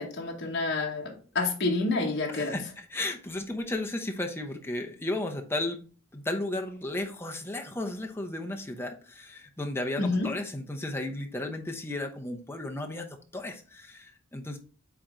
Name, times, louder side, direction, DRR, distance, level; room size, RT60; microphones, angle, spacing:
voice 1, 0.0-2.5 10.0-10.3, left 3 dB, 55° left, 1.2 m, -28 dB
voice 2, 2.3-5.8 6.1-14.6, left 2 dB, 10° left, 0.8 m, -34 dB
8.3 x 3.1 x 3.8 m
head